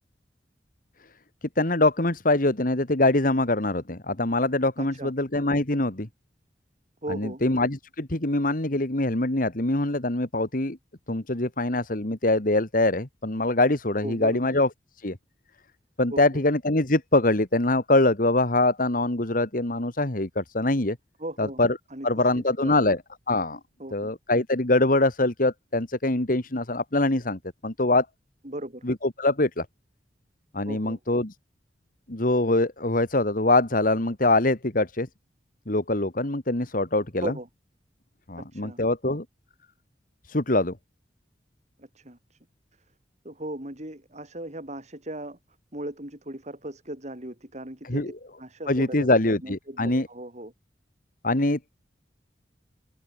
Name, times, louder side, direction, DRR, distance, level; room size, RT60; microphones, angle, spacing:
voice 1, 1.6-6.1 7.1-10.8 11.1-14.7 15.0-15.2 16.0-21.0 21.4-21.8 22.0-23.0 23.3-23.6 23.9-28.1 28.8-29.7 30.5-31.3 32.1-35.1 35.7-37.3 38.3-39.2 40.2-40.8 47.9-48.1 48.7-50.1 51.2-51.7, left 2 dB, 50° left, 2.2 m, -24 dB
voice 2, 4.8-5.1 7.0-7.4 14.0-14.4 16.1-16.4 21.2-21.6 21.9-22.9 23.8-24.1 28.4-28.9 30.7-31.0 37.2-37.5 38.4-38.8 41.8-42.4 43.2-45.4 45.7-48.1 48.4-50.5, right 1 dB, 40° right, 5.2 m, -38 dB
open air
head